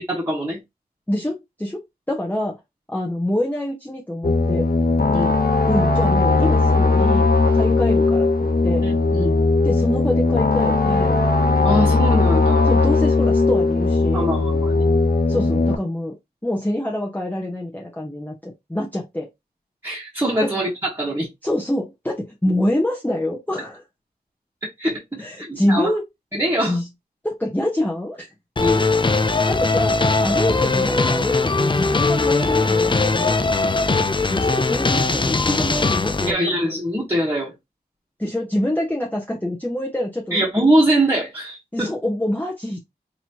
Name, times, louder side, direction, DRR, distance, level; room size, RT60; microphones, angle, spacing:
voice 1, 0.1-0.6 5.1-5.3 8.8-9.3 11.6-12.7 14.1-14.7 19.8-20.7 21.0-21.3 24.6-25.9 26.3-26.8 28.6-28.8 36.3-37.5 40.3-41.9, right 1 dB, 15° right, 1.4 m, -22 dB
voice 2, 1.1-1.8 2.1-2.6 2.9-4.7 5.7-8.9 9.6-11.2 12.7-14.3 15.3-16.1 16.4-19.3 20.4-20.5 21.4-23.8 25.2-26.1 26.6-26.9 27.2-28.3 28.8-28.9 29.5-33.4 34.3-36.6 38.2-40.4 41.7-42.8, left 1 dB, 10° left, 0.9 m, -25 dB
sound 1, 4.2-15.8, left 3 dB, 65° left, 0.8 m, -18 dB
sound 2, 28.6-36.3, left 3 dB, 30° left, 0.4 m, -20 dB
4.1 x 2.9 x 2.9 m
wide cardioid pair, 75°, 16 cm